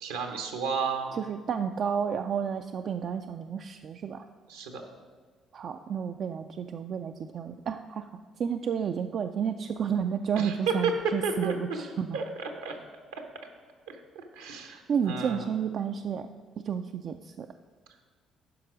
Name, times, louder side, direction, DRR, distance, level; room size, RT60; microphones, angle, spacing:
voice 1, 0.0-1.2 4.5-4.8 10.4-10.9 11.2-11.8 12.1-12.8 13.1-13.2 13.9-15.5, right 5 dB, 85° right, 4 dB, 0.9 m, -33 dB
voice 2, 1.1-4.3 5.5-8.1 8.4-12.2 14.9-16.3 16.6-17.5, right 7 dB, 55° right, 7 dB, 0.3 m, -31 dB
9.4 x 5.9 x 4.9 m, 1.5 s
hypercardioid pair, 50°, 0 cm